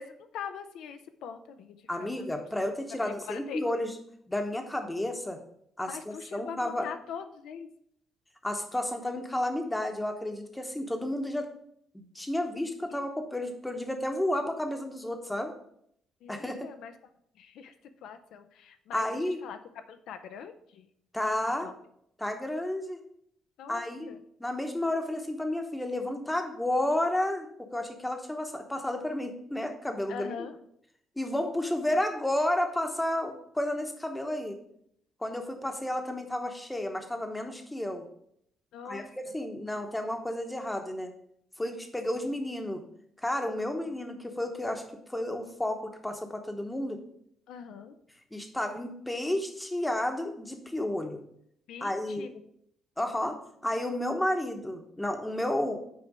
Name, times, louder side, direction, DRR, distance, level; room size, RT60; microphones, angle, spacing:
voice 1, 0.0-2.1 3.0-3.6 5.9-7.7 16.2-16.9 17.3-17.7 18.0-19.6 19.9-20.9 21.6-21.7 23.6-24.2 30.1-30.6 38.7-39.4 47.5-48.0 51.7-52.4, left 7 dB, 80° left, 8 dB, 0.6 m, -42 dB
voice 2, 1.9-3.9 4.3-5.4 5.8-6.9 8.4-11.5 11.9-15.5 16.3-16.7 18.9-19.4 21.1-21.7 22.2-23.0 23.7-24.1 24.4-27.5 27.7-30.3 31.2-34.6 35.2-38.0 38.8-41.1 41.6-42.8 43.2-47.0 48.3-51.2 51.8-52.3 53.0-53.4 53.6-55.8, left 1 dB, 5° left, 5 dB, 1.0 m, -31 dB
6.4 x 4.4 x 6.0 m, 0.71 s
cardioid pair, 125°, 0 cm